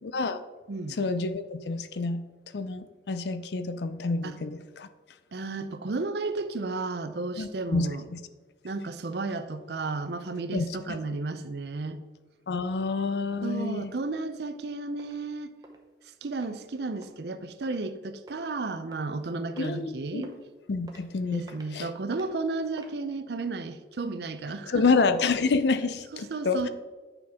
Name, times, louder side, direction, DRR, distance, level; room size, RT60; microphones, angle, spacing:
voice 1, 0.0-0.4 0.9-2.2 2.5-4.9 7.4-8.2 10.5-11.0 12.5-13.9 19.6-20.3 20.7-21.4 21.7-21.9 24.7-26.7, left 4 dB, 65° left, 11 dB, 0.5 m, -28 dB
voice 2, 5.3-8.0 8.6-12.0 13.4-15.5 16.2-20.3 21.3-24.8 26.1-26.7, right 3 dB, 65° right, 10 dB, 0.5 m, -33 dB
sound 1, 14.5-14.6 15.0-15.2 15.6-15.8 16.3-16.5 17.0-17.1 17.6-17.8 18.3-18.5 18.9-19.2 19.6-19.7 20.2-20.4 20.9-21.0 21.5-21.7 22.1-22.3 22.7-23.0, right 1 dB, 20° right, 0.8 m, -50 dB
8.9 x 6.1 x 3.6 m, 1.3 s
head